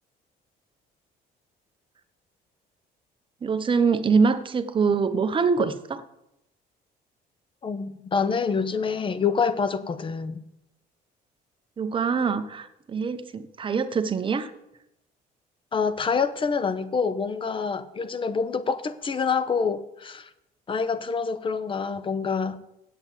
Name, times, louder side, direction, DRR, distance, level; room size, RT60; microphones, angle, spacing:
voice 1, 3.4-6.0 11.8-14.5, right 5 dB, 30° right, 0.8 m, -24 dB
voice 2, 7.6-10.4 15.7-20.3 20.7-22.6, left 5 dB, 30° left, 0.8 m, -26 dB
8.1 x 7.9 x 7.5 m
cardioid pair, 110°, 17 cm